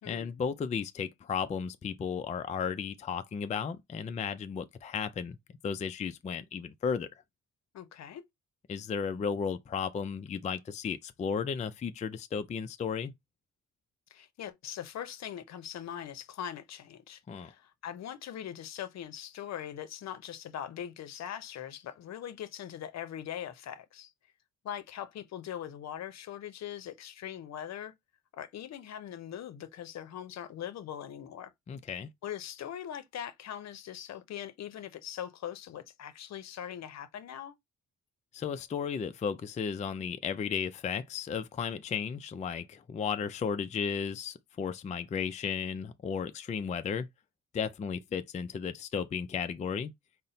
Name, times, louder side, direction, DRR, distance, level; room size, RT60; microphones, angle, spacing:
voice 1, 0.1-5.4 5.6-7.1 8.7-13.1 17.3-17.5 31.7-32.1 38.3-47.1 47.5-49.9, left 6 dB, 25° left, 0.4 m, -34 dB
voice 2, 7.7-8.2 14.1-24.1 24.6-27.9 28.3-31.5 32.2-37.5, left 10 dB, 60° left, 0.7 m, -41 dB
4.0 x 2.1 x 3.9 m
cardioid pair, 90°, 30 cm